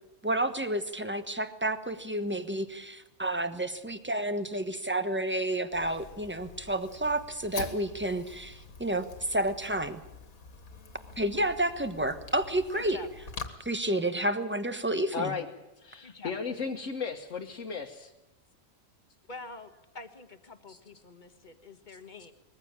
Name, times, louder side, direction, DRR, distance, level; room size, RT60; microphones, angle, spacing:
voice 1, 0.2-10.0 11.2-13.0 13.6-15.4, right 1 dB, 10° right, 9 dB, 1.1 m, -30 dB
Fire, 5.7-13.5, left 4 dB, 80° left, 2.1 m, -45 dB
voice 2, 12.7-13.1 16.0-16.4 19.3-22.3, left 3 dB, 35° left, 9 dB, 1.6 m, -46 dB
voice 3, 15.1-15.4 15.8-18.1 20.7-20.8, left 5 dB, 60° left, 0 dB, 1.6 m, -35 dB
21.0 x 15.0 x 8.8 m, 0.96 s
omnidirectional pair, 1.5 m